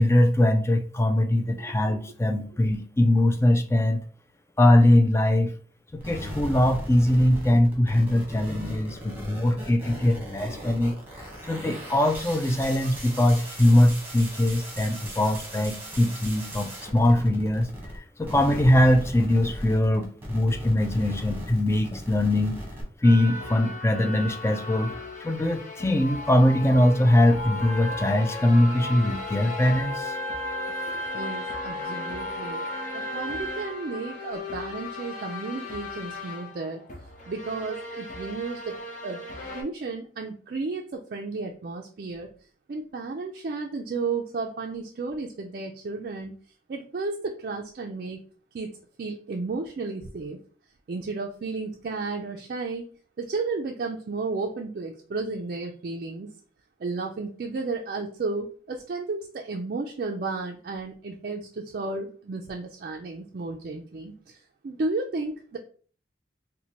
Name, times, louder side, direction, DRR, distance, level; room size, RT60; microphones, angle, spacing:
voice 1, 0.0-4.0 4.6-5.5 6.1-10.9 11.5-22.6 23.0-24.9 25.2-30.2, left 1 dB, 15° left, 6 dB, 0.4 m, -22 dB
sound 1, 6.0-18.0 18.2-22.8, equal, 10° right, 1.1 m, -38 dB
sound 2, 23.0-39.6, left 1 dB, 45° left, 0.8 m, -37 dB
sound 3, 26.0-33.5, left 4 dB, 75° left, 1.0 m, -37 dB
voice 2, 30.9-32.7 32.9-36.8 37.3-39.2 39.5-42.3 42.7-46.3 46.7-48.2 48.5-50.4 50.9-52.9 53.2-56.3 56.8-64.4 64.6-65.6, right 3 dB, 55° right, 1 dB, 0.4 m, -33 dB
4.2 x 2.2 x 2.8 m, 0.43 s
head